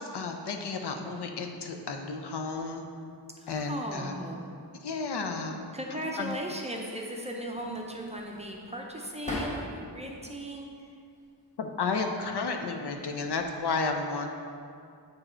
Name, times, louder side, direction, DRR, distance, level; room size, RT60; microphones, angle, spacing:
voice 1, 0.0-2.8 3.5-4.1 4.8-5.6 6.2-6.4 11.6-14.3, left 4 dB, 70° left, 4 dB, 0.7 m, -32 dB
voice 2, 3.4-4.4 5.7-10.9, equal, 15° right, 0 dB, 0.6 m, -37 dB
sound 1, 7.5-10.0 10.4-11.3 12.2-12.6 12.9-13.7, left 1 dB, 15° left, 1.3 m, -40 dB
7.7 x 4.8 x 4.3 m, 2.3 s
wide cardioid pair, 150°, 42 cm